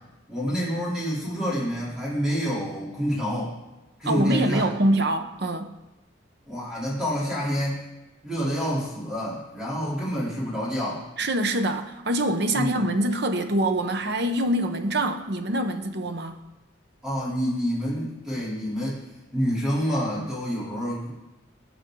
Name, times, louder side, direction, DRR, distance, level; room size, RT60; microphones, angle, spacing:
voice 1, 0.3-3.5 4.0-4.7 6.5-7.9 8.2-11.0 12.5-12.9 17.0-19.0 19.3-21.1, equal, 5° right, -8 dB, 3.4 m, -27 dB
voice 2, 4.1-5.7 11.2-16.4, right 1 dB, 55° right, 7 dB, 1.0 m, -25 dB
19.0 x 7.8 x 3.9 m, 0.99 s
head